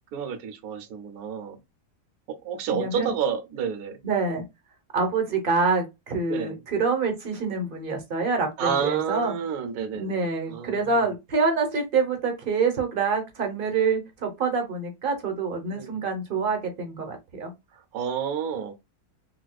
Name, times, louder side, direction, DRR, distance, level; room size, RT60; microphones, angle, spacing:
voice 1, 0.1-1.6 2.3-4.0 6.3-6.6 8.6-11.0 15.7-15.9 17.9-18.7, right 7 dB, 70° right, 1.1 m, -30 dB
voice 2, 2.7-3.1 4.0-4.4 4.9-9.3 9.9-17.5, right 4 dB, 40° right, 0.9 m, -26 dB
4.1 x 2.3 x 2.2 m
omnidirectional pair, 1.7 m